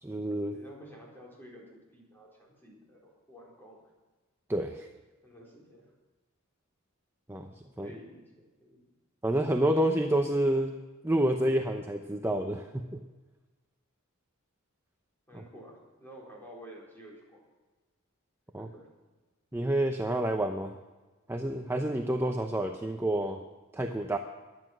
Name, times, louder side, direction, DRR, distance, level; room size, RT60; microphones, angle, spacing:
voice 1, 0.0-0.5 4.5-4.9 7.3-7.5 7.8-7.9 9.2-10.8 11.0-13.0 18.5-18.7 19.5-20.7 21.3-23.4 23.7-24.2, right 1 dB, 10° right, 4 dB, 0.7 m, -28 dB
voice 2, 0.5-3.8 5.2-5.8 7.8-8.9 15.3-17.5 18.6-18.9, equal, 10° left, -4 dB, 4.5 m, -51 dB
15.5 x 11.5 x 6.1 m, 1.2 s
head